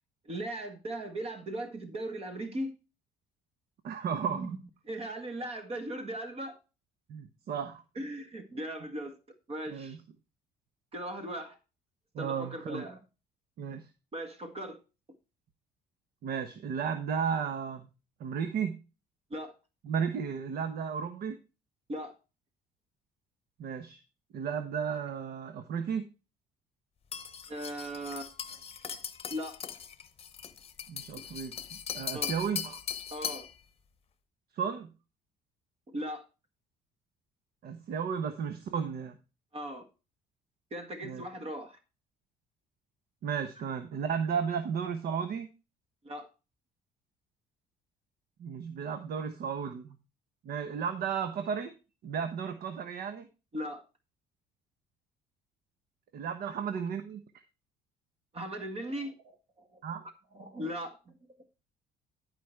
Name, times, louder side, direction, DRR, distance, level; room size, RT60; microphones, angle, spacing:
voice 1, 0.2-2.7 4.2-4.6 4.9-6.6 8.0-9.2 9.5-10.0 10.9-11.6 12.2-13.0 14.1-14.8 19.3-19.5 21.9-22.1 27.5-28.3 29.3-29.6 32.1-32.3 33.1-33.5 35.9-36.2 39.5-39.8 40.7-41.8 46.0-46.3 53.5-53.8 58.3-59.4 59.7-59.8 60.3-61.1, right 1 dB, 35° right, 6 dB, 1.8 m, -38 dB
voice 2, 3.8-4.5 7.1-7.8 9.7-10.0 12.1-12.9 13.6-13.9 16.2-17.9 18.2-18.8 19.8-21.4 23.6-24.0 24.3-26.1 30.9-31.5 31.9-32.8 34.5-34.9 37.6-39.2 41.0-41.2 43.2-45.5 48.4-50.0 50.4-51.7 52.0-53.3 56.1-57.2 59.8-60.0, right 7 dB, 65° right, 8 dB, 1.1 m, -34 dB
sound 1, 27.1-33.5, left 8 dB, 35° left, 0.9 m, -39 dB
12.0 x 5.1 x 4.5 m, 0.30 s
cardioid pair, 110°, 17 cm